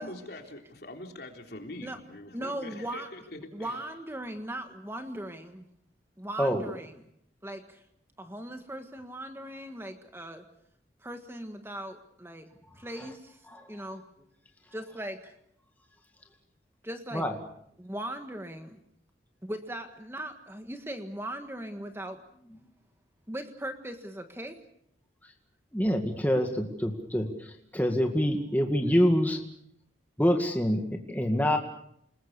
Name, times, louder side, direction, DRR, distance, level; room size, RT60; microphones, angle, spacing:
voice 1, 0.0-4.1, left 1 dB, 55° left, 3 dB, 3.7 m, -44 dB
voice 2, 2.3-3.1 3.5-5.6 6.2-6.9 7.4-7.8 8.2-10.4 11.0-12.5 12.7-14.3 14.7-15.3 16.8-17.3 17.8-18.8 19.4-22.2 23.3-24.5, right 1 dB, 10° right, 6 dB, 1.6 m, -39 dB
voice 3, 25.7-29.4 30.2-31.6, equal, 10° left, 3 dB, 2.0 m, -26 dB
28.5 x 20.5 x 6.8 m, 0.69 s
head